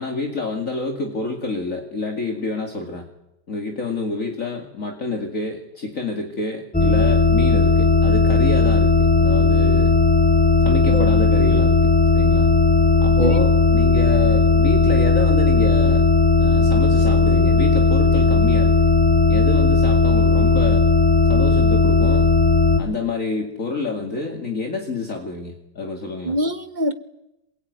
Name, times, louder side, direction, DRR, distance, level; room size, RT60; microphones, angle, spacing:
voice 1, 0.0-3.1 3.5-10.0 10.6-12.5 13.0-16.1 16.4-18.9 19.3-20.9 21.3-22.3 22.8-26.3, left 3 dB, 45° left, 3 dB, 2.6 m, -28 dB
sound 1, 6.7-22.8, left 4 dB, 5° left, 1.4 m, -16 dB
voice 2, 13.2-13.5 26.2-26.9, right 1 dB, 30° right, 10 dB, 1.2 m, -24 dB
26.5 x 21.5 x 9.5 m, 0.89 s
omnidirectional pair, 1.9 m